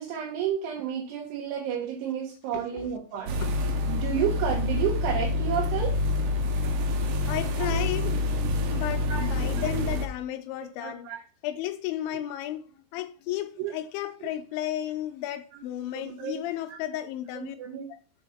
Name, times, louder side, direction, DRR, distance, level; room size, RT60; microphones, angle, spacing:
voice 1, 0.0-3.3 3.9-5.9 9.1-9.3 10.8-11.2 12.1-12.2 13.6-13.7 15.9-16.4 17.3-17.9, right 8 dB, 90° right, 3.3 m, -31 dB
voice 2, 2.5-2.9 3.4-3.5 7.2-8.2 8.7-11.1 11.4-12.6 12.9-17.6 17.9-18.0, left 13 dB, 80° left, 2.3 m, -33 dB
sound 1, 3.3-10.1, left 2 dB, 70° right, 2.0 m, -27 dB
7.0 x 3.9 x 5.7 m
omnidirectional pair, 4.7 m